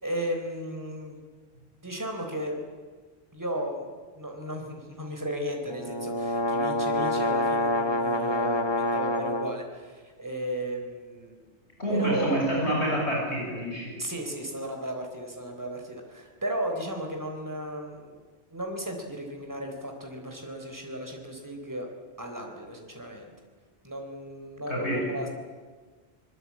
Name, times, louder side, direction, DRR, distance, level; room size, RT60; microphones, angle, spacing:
voice 1, 0.0-1.2 1.8-2.6 3.3-11.5 11.9-12.4 14.0-18.2 18.5-21.9 22.2-23.3 23.8-25.3, right 1 dB, 15° right, 3 dB, 3.9 m, -35 dB
sound 1, 5.7-9.6, left 1 dB, 25° left, 1.4 m, -27 dB
voice 2, 11.8-13.9 24.7-25.0, right 1 dB, 80° left, -3 dB, 8.0 m, -27 dB
25.0 x 22.5 x 8.6 m, 1.5 s
omnidirectional pair, 1.1 m